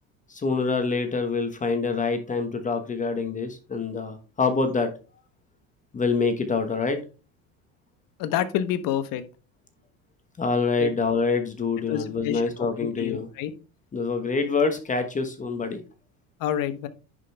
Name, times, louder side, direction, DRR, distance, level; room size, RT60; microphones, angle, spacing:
voice 1, 0.3-4.9 5.9-7.0 10.4-13.3 13.9-15.8, left 4 dB, 20° left, 7 dB, 1.2 m, -26 dB
voice 2, 8.2-9.2 10.8-10.9 11.9-13.5 16.4-16.9, left 10 dB, 60° left, 11 dB, 1.2 m, -28 dB
10.5 x 5.3 x 3.4 m, 0.33 s
cardioid pair, 130°, 38 cm